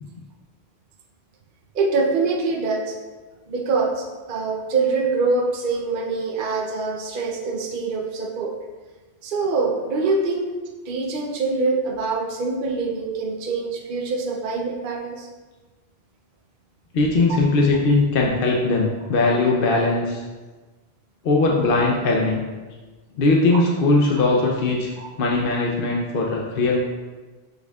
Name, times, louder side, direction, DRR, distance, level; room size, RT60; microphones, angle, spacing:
voice 1, 1.7-3.0 3.5-8.6 9.2-10.6 10.9-15.3 25.0-25.1, right 3 dB, 55° right, 1 dB, 0.8 m, -24 dB
voice 2, 16.9-20.2 21.2-22.4 23.2-24.9 25.2-26.8, left 3 dB, 60° left, -1 dB, 0.8 m, -20 dB
6.9 x 6.6 x 2.3 m, 1.3 s
omnidirectional pair, 1.1 m